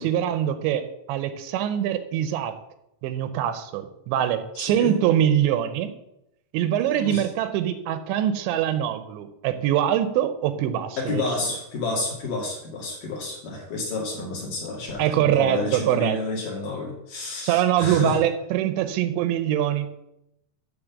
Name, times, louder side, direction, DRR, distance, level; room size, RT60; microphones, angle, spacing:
voice 1, 0.0-2.6 3.0-5.9 6.5-11.2 15.0-16.2 17.4-19.9, right 11 dB, 80° right, 10 dB, 2.9 m, -23 dB
voice 2, 4.6-4.9 6.9-7.3 11.0-18.2, left 3 dB, 50° left, -3 dB, 3.5 m, -30 dB
12.5 x 4.2 x 7.2 m, 0.84 s
omnidirectional pair, 5.3 m